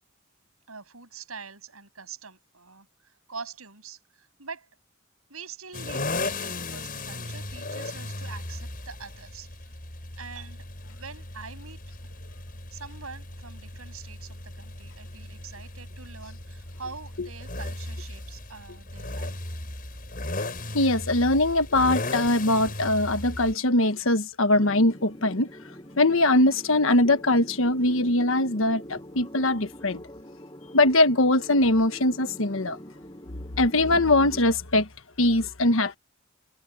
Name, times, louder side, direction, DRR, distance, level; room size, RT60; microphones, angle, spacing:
voice 1, 0.7-4.7 5.3-9.7 10.2-10.7 11.0-11.8 12.7-19.5, right 5 dB, 85° right, 7.3 m, -44 dB
sound 1, 5.7-23.5, left 2 dB, 40° left, 7.0 m, -36 dB
voice 2, 20.7-25.5 26.0-30.0 30.7-32.8 33.6-34.9 35.2-36.0, left 2 dB, 70° left, 1.4 m, -22 dB
sound 2, 24.5-34.4, equal, 20° left, 8.0 m, -44 dB
head